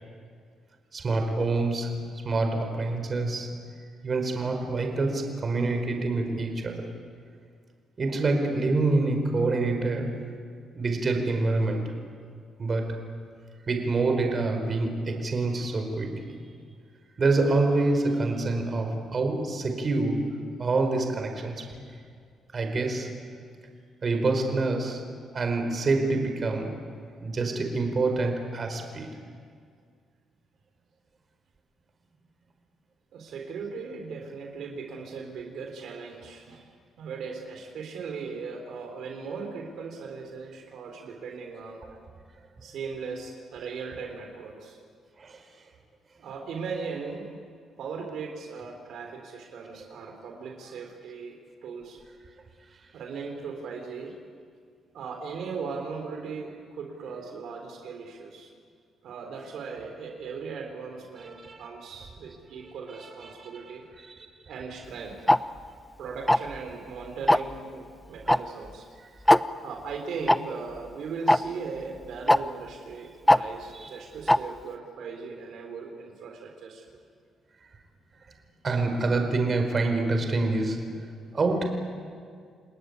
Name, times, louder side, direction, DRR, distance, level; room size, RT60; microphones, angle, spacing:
voice 1, 0.9-3.6 4.0-6.9 8.0-10.3 10.8-11.9 12.6-13.1 13.7-16.4 17.2-21.7 22.5-23.2 24.0-26.8 27.2-29.1 45.2-45.4 61.2-61.7 62.6-62.7 63.0-63.7 64.0-64.3 73.7-73.9 78.6-81.6, right 3 dB, 40° right, 5 dB, 4.9 m, -27 dB
voice 2, 33.1-36.7 37.0-41.8 42.6-44.8 46.2-47.4 47.8-52.0 52.9-54.1 54.9-58.5 59.0-63.8 64.5-65.2 66.0-68.9 69.6-76.9, right 5 dB, 75° right, 3 dB, 4.1 m, -38 dB
Tick-tock, 65.3-65.4 66.3-66.6 67.3-67.5 68.3-68.4 68.7-68.8 69.3-69.4 70.3-70.4 71.3-71.4 72.3-72.4 73.3-73.4 74.3-74.4, left 1 dB, 5° left, 0.7 m, -17 dB
29.5 x 19.5 x 9.7 m, 2.1 s
cardioid pair, 90°, 0 cm